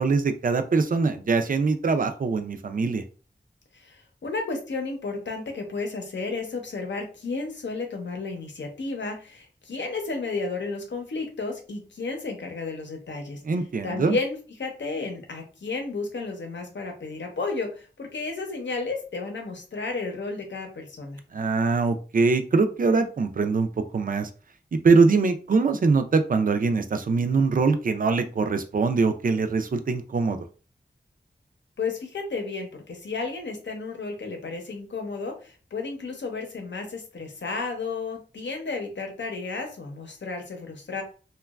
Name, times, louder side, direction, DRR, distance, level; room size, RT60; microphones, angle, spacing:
voice 1, 0.0-3.0 13.4-14.2 21.3-23.7 23.9-24.3 24.8-30.4, right 4 dB, 50° right, 8 dB, 0.4 m, -23 dB
voice 2, 3.7-13.4 13.8-21.2 31.8-41.0, left 3 dB, 85° left, 3 dB, 0.7 m, -32 dB
2.9 x 2.2 x 2.3 m, 0.37 s
wide cardioid pair, 80°, 18 cm